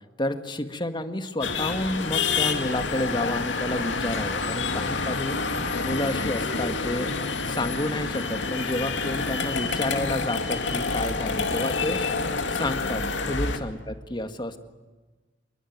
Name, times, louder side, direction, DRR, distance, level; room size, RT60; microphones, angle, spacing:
voice 1, 0.2-5.4 5.8-7.1 7.5-12.0 12.5-14.6, left 1 dB, 25° left, 8 dB, 1.8 m, -30 dB
sound 1, 1.4-13.6, left 4 dB, 80° left, 2.5 m, -28 dB
28.0 x 22.5 x 9.4 m, 1.3 s
head